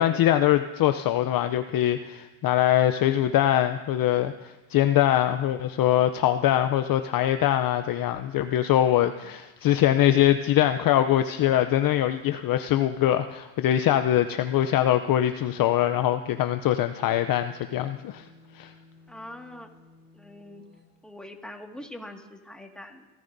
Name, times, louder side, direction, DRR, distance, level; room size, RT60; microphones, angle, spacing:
voice 1, 0.0-18.3 18.5-18.7, left 12 dB, 45° left, 9 dB, 0.6 m, -23 dB
sound 1, 17.0-20.9, left 3 dB, 20° right, 3.9 m, -55 dB
voice 2, 19.1-19.7 20.1-20.6 21.0-23.1, left 1 dB, ahead, 2 dB, 1.9 m, -43 dB
26.5 x 13.5 x 2.7 m, 1.1 s
supercardioid pair, 85°, 50 cm